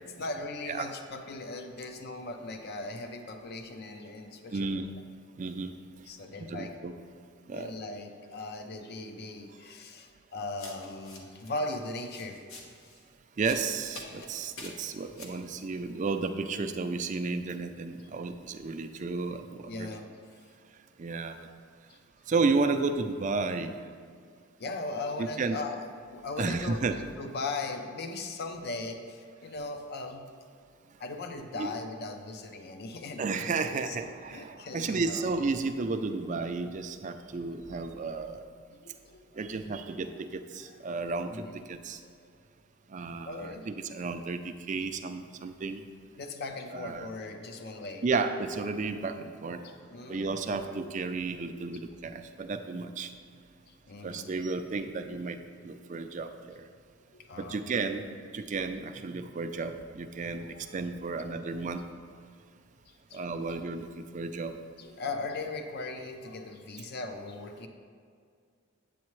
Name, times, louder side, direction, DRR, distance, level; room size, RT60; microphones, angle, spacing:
voice 1, 0.2-4.8 6.1-6.8 7.5-12.4 19.7-20.1 20.3-20.5 21.9-22.0 24.6-30.3 31.0-34.0 34.3-35.3 37.4-37.5 38.8-39.5 40.7-40.8 41.3-41.6 42.0-42.1 43.2-43.7 46.2-48.0 49.5-50.4 53.7-54.3 57.1-57.7 60.2-60.8 61.1-61.4 62.9-63.6 64.8-67.7, left 3 dB, 50° left, 6 dB, 0.6 m, -39 dB
voice 2, 4.5-4.9 5.4-5.7 6.5-6.9 7.5-7.7 13.4-19.9 21.0-21.4 22.3-23.8 25.4-25.6 26.4-27.0 31.6-31.7 33.2-38.5 39.4-42.0 42.9-45.8 46.7-47.1 48.0-49.6 50.1-53.1 54.0-56.6 57.4-60.5 60.7-61.8 63.1-64.6, right 4 dB, 35° right, 8 dB, 0.4 m, -32 dB
sound 1, 10.6-11.5 11.8-13.0 13.4-14.3 14.6-15.4, left 2 dB, 80° left, 1.2 m, -46 dB
8.5 x 8.1 x 3.1 m, 2.2 s
head